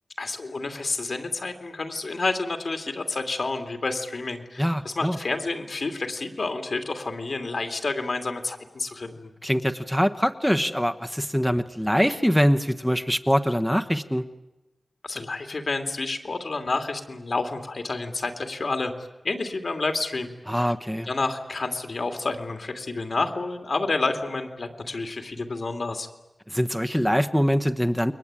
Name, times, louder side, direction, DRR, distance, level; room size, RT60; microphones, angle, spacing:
voice 1, 0.2-9.3 15.0-18.9 19.2-20.7 21.1-26.1, left 3 dB, 70° left, 6 dB, 2.8 m, -29 dB
voice 2, 4.6-5.2 9.4-14.2 20.5-21.1 26.5-28.1, equal, ahead, 8 dB, 1.2 m, -23 dB
29.0 x 22.5 x 9.0 m, 1.1 s
wide cardioid pair, 75°, 0 cm